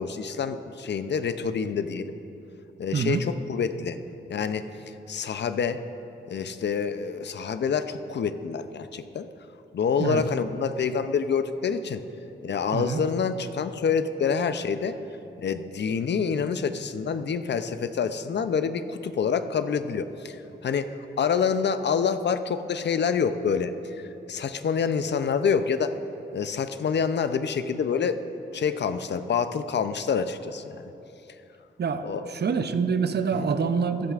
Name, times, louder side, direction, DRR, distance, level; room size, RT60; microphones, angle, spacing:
voice 1, 0.0-2.1 2.8-4.0 4.3-5.8 6.3-9.3 9.7-12.0 12.4-15.0 15.4-20.4 20.6-26.0 26.3-28.2 28.5-30.9 32.0-32.2 33.3-33.5, left 6 dB, 60° left, 11 dB, 0.5 m, -27 dB
voice 2, 2.9-3.3 10.0-10.2 12.7-13.0 31.8-34.1, right 5 dB, 55° right, 9 dB, 0.6 m, -26 dB
14.5 x 11.5 x 2.4 m, 2.9 s
cardioid pair, 65°, 20 cm